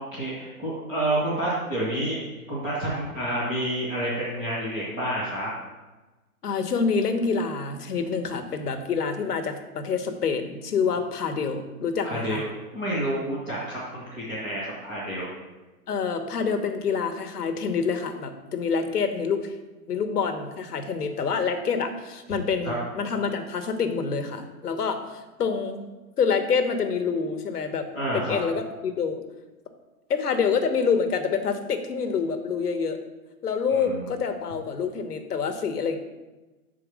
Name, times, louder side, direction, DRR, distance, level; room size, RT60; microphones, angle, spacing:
voice 1, 0.0-2.2 2.5-5.5 12.0-12.5 12.7-15.3 22.6-22.8 27.9-28.4 33.7-34.1, right 1 dB, ahead, -10 dB, 0.5 m, -29 dB
voice 2, 6.4-12.4 15.9-19.5 19.9-25.8 26.2-27.8 28.1-29.2 30.1-33.0 33.4-36.0, left 5 dB, 85° left, 7 dB, 1.2 m, -27 dB
6.2 x 4.7 x 6.2 m, 1.1 s
hypercardioid pair, 160°, 46 cm